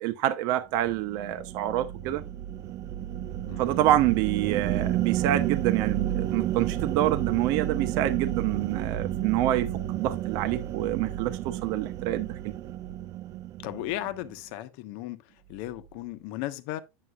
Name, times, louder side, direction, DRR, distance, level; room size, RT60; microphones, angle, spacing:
voice 1, 0.0-2.2 3.6-12.4, right 13 dB, 55° right, 0.9 m, -27 dB
sound 1, 0.8-14.3, right 12 dB, 40° right, 0.4 m, -31 dB
voice 2, 13.6-15.2 15.5-16.8, left 15 dB, 60° left, 1.0 m, -35 dB
9.5 x 7.6 x 2.4 m
supercardioid pair, 135°, 8 cm